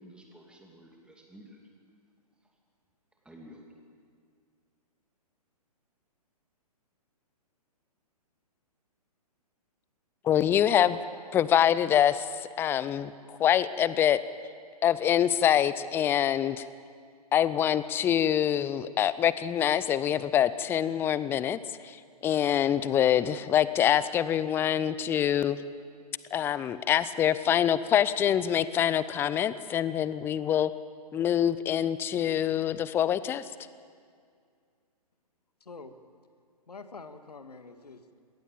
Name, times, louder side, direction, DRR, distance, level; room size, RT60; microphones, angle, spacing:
voice 1, 0.0-1.6 2.4-2.6 3.2-3.7, equal, 5° right, 0 dB, 2.6 m, -52 dB
voice 2, 10.2-11.0 11.3-12.3 12.6-14.2 14.8-16.7 17.3-25.6 26.3-30.7 31.1-33.5, left 10 dB, 10° left, 16 dB, 0.4 m, -25 dB
voice 3, 35.6-35.9 36.7-38.2, left 4 dB, 75° left, 9 dB, 1.7 m, -46 dB
20.5 x 18.0 x 7.2 m, 2.2 s
figure-of-eight pair, 120°, 20 cm